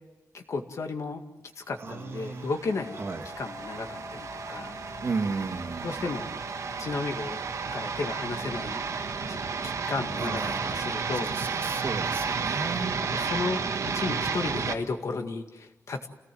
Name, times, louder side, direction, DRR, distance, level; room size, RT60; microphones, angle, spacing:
voice 1, 0.3-1.2 1.6-3.0 3.4-4.7 5.8-6.3 6.8-7.4 7.7-8.8 9.2-9.4 9.6-11.3 13.1-13.6 13.9-16.1, left 3 dB, 60° left, 5 dB, 2.1 m, -33 dB
voice 2, 1.8-2.5 3.0-3.3 5.0-6.1 10.2-13.1, right 4 dB, 45° right, 4 dB, 2.1 m, -34 dB
sound 1, 2.2-14.8, right 5 dB, 65° right, 1.5 m, -32 dB
sound 2, 2.8-13.9, left 2 dB, 75° left, 3.0 m, -48 dB
29.0 x 18.0 x 7.8 m, 1.0 s
wide cardioid pair, 175°, 6 cm